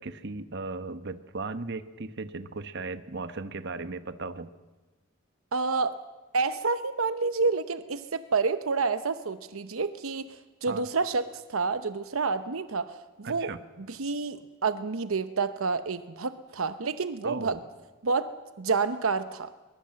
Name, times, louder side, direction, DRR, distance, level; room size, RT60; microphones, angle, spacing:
voice 1, 0.0-4.5 10.7-10.8 13.2-13.6 17.2-17.6, right 3 dB, 55° right, 11 dB, 1.0 m, -36 dB
voice 2, 5.5-6.0 6.3-13.5 13.9-17.6 18.0-18.3 18.6-19.5, right 4 dB, 75° right, 11 dB, 0.8 m, -29 dB
23.0 x 21.0 x 7.6 m, 1.2 s
head